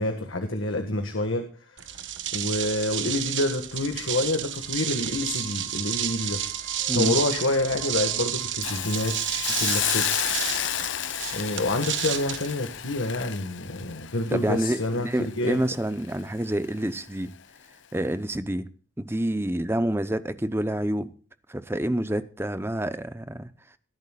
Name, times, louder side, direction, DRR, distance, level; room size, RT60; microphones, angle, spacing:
voice 1, 0.0-1.4 2.3-6.4 6.9-10.1 11.3-15.6, left 2 dB, 90° left, 1.8 m, -28 dB
sound 1, 1.8-13.2, right 11 dB, 70° right, 1.2 m, -31 dB
sound 2, 3.8-4.2 4.6-10.2, left 1 dB, 15° left, 2.1 m, -47 dB
Hiss, 8.6-15.7 16.1-16.2, left 11 dB, 70° left, 0.6 m, -31 dB
voice 2, 14.3-17.4 17.9-18.7 19.0-21.1 21.5-23.5, right 1 dB, 10° right, 0.7 m, -28 dB
22.0 x 11.0 x 2.4 m
head